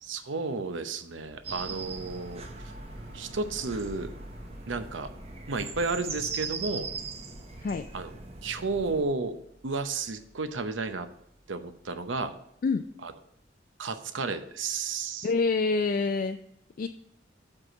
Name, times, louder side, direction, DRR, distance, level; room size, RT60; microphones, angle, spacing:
voice 1, 0.0-2.4 3.1-4.1 4.7-5.1 5.5-6.9 7.9-9.4 9.6-11.1 11.5-12.3 13.0-13.1 13.8-15.3, right 3 dB, 90° right, 9 dB, 0.7 m, -32 dB
sound 1, 1.2-12.8, equal, 55° right, 1.6 m, -52 dB
sound 2, 1.4-9.0, right 4 dB, 35° right, 0.8 m, -40 dB
voice 2, 15.2-16.4 16.8-16.9, left 4 dB, 45° left, 8 dB, 0.3 m, -26 dB
7.4 x 4.8 x 6.2 m, 0.76 s
head